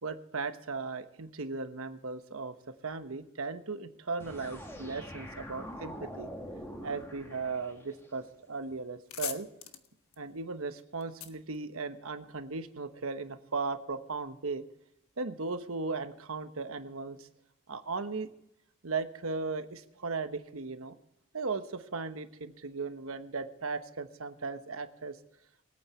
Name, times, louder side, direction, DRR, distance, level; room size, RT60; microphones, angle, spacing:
voice 1, 0.0-2.5 2.8-6.3 6.8-9.5 10.2-14.6 15.2-17.3 17.7-18.3 18.8-21.0 21.3-25.2, right 4 dB, 80° right, 10 dB, 1.1 m, -37 dB
sound 1, 4.2-8.1, equal, 10° left, 1.9 m, -44 dB
sound 2, 9.0-12.4, left 10 dB, 85° left, 1.3 m, -43 dB
23.0 x 8.8 x 4.4 m, 0.81 s
head